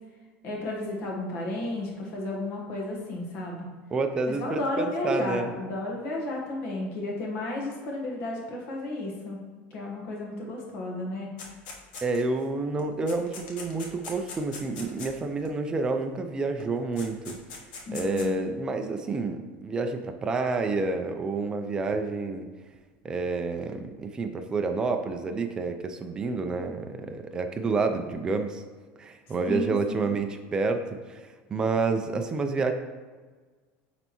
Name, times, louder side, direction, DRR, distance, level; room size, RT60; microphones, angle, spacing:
voice 1, 0.4-3.7 4.3-9.4 9.7-11.3 17.9-18.3 29.5-30.1, left 2 dB, 45° left, -1 dB, 1.4 m, -33 dB
voice 2, 3.9-5.5 12.0-17.4 17.9-22.5 23.0-28.6 29.0-32.7, right 3 dB, 15° right, 6 dB, 0.4 m, -29 dB
sound 1, 11.4-12.4 12.8-15.5 16.6-16.7 17.0-18.3, left 4 dB, 80° left, 1.1 m, -41 dB
9.3 x 3.4 x 3.0 m, 1.4 s
cardioid pair, 160°, 5 cm